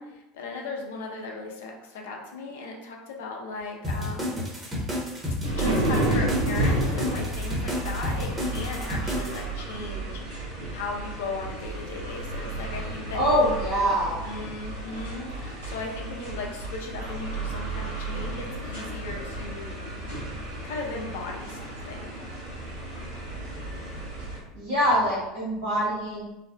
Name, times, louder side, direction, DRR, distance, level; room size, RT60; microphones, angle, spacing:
voice 1, 0.0-4.5 5.3-10.4 10.7-13.4 14.2-19.7 20.6-22.2, left 3 dB, 65° left, 0 dB, 0.5 m, -37 dB
sound 1, 3.8-9.4, left 1 dB, 25° right, 1.0 m, -31 dB
sound 2, 5.4-24.4, right 2 dB, 80° right, 1.1 m, -32 dB
voice 2, 13.1-14.2 24.5-26.2, equal, 65° right, -9 dB, 0.9 m, -24 dB
3.2 x 2.0 x 2.4 m, 0.96 s
figure-of-eight pair, 75°, 0 cm